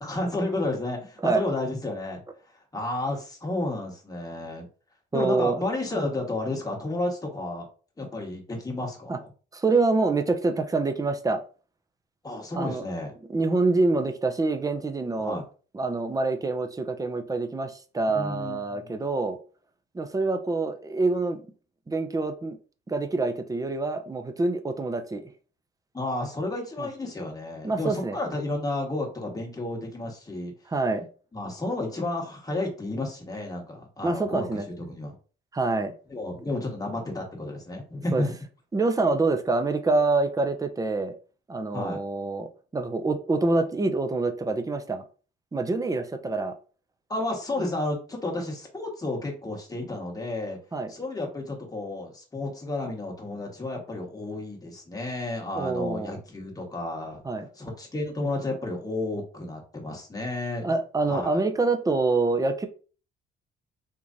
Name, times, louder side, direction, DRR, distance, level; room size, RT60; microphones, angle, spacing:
voice 1, 0.0-2.2 2.7-4.7 5.1-7.6 8.0-9.3 12.2-13.1 15.2-15.4 18.1-18.9 25.9-30.5 31.3-34.6 34.9-35.1 36.1-38.3 41.7-42.0 47.1-50.6 50.9-57.2 57.5-60.7 61.1-61.4, left 2 dB, 20° left, 0 dB, 1.4 m, -32 dB
voice 2, 5.1-5.6 5.9-6.1 9.1-9.2 9.5-11.4 12.5-12.9 13.3-15.4 15.7-19.4 19.9-21.4 21.9-22.6 22.9-25.3 26.8-26.9 27.6-28.2 30.7-31.1 34.0-34.7 35.5-35.9 38.1-38.2 38.7-41.1 41.5-45.0 45.5-46.6 47.6-47.7 50.7-50.9 55.5-56.2 57.2-57.5 60.6-62.7, right 3 dB, 15° right, 7 dB, 0.6 m, -26 dB
3.7 x 3.0 x 2.6 m, 0.38 s
cardioid pair, 90°, 20 cm